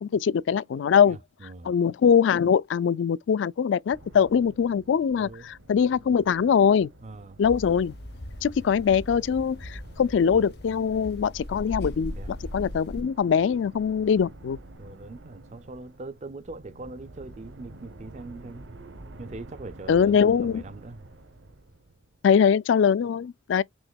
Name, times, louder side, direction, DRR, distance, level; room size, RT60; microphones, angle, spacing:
voice 1, 0.0-1.2 1.6-6.9 7.4-7.9 8.4-14.6 19.9-20.6 22.2-23.6, left 7 dB, 75° left, 0.3 m, -22 dB
voice 2, 0.7-1.7 5.1-5.5 7.0-7.4 12.2-12.3 14.8-18.7 19.2-21.1, right 3 dB, 35° right, 0.4 m, -41 dB
sound 1, 3.9-22.3, right 1 dB, 75° right, 0.9 m, -49 dB
sound 2, 7.4-13.0, left 1 dB, 55° left, 0.9 m, -39 dB
6.2 x 2.9 x 2.3 m
head